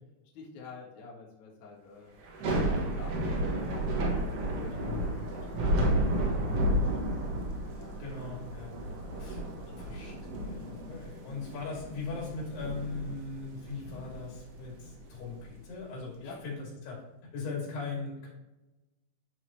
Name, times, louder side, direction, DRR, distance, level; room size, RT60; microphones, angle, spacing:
voice 1, 0.3-2.2 2.9-3.9 4.2-7.2 7.7-8.0 9.1-10.2 11.2-11.5 16.2-16.4, left 4 dB, 55° left, -4 dB, 2.8 m, -50 dB
Thunder / Rain, 2.2-15.4, right 1 dB, 65° right, 1.5 m, -32 dB
voice 2, 8.0-8.7 9.2-9.4 9.8-18.3, left 4 dB, 90° left, -3 dB, 5.2 m, -39 dB
11.0 x 6.1 x 3.2 m, 1.0 s
omnidirectional pair, 4.5 m